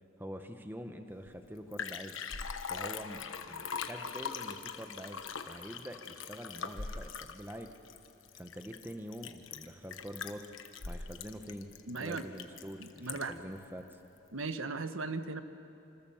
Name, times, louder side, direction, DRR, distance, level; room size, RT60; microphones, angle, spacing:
voice 1, 0.2-2.1 2.6-7.7 8.3-10.5 10.8-14.0, equal, 10° right, 7 dB, 1.0 m, -45 dB
Liquid, 1.3-1.4 1.6-13.5 13.9-14.0, left 5 dB, 75° left, 1.2 m, -41 dB
voice 2, 11.9-12.3 12.8-13.4 14.3-15.4, right 3 dB, 80° right, 9 dB, 1.2 m, -37 dB
27.5 x 26.0 x 7.2 m, 2.8 s
head